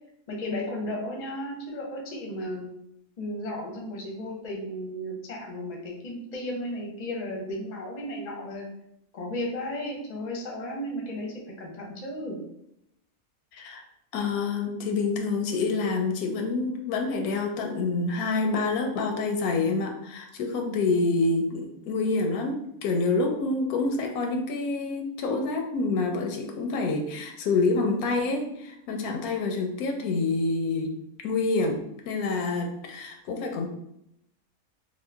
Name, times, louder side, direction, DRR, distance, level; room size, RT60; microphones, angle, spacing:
voice 1, 0.3-2.7 3.2-8.7 9.1-12.4, left 1 dB, 45° left, -1 dB, 0.6 m, -34 dB
voice 2, 13.5-13.8 14.1-30.9 31.2-33.7, left 3 dB, 85° left, 3 dB, 1.1 m, -27 dB
2.9 x 2.1 x 3.3 m, 0.79 s
omnidirectional pair, 1.5 m